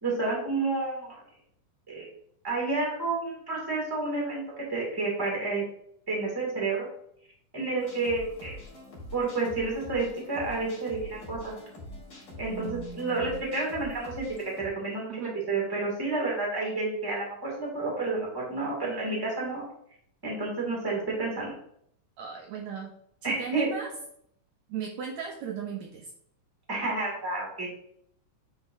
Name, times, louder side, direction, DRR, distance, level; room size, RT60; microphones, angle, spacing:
voice 1, 0.0-1.2 1.9-2.1 2.4-5.6 6.1-6.9 7.5-8.6 9.1-11.5 12.4-19.7 20.2-21.5 23.2-23.7 26.7-27.7, right 3 dB, 10° right, -4 dB, 1.7 m, -30 dB
sound 1, 7.8-14.7, left 1 dB, 45° left, 2.7 m, -44 dB
voice 2, 12.5-13.4 15.1-15.3 22.2-22.9 23.2-23.9 24.7-26.1, right 7 dB, 75° right, 1 dB, 1.9 m, -37 dB
8.7 x 4.5 x 2.6 m, 0.68 s
omnidirectional pair, 3.6 m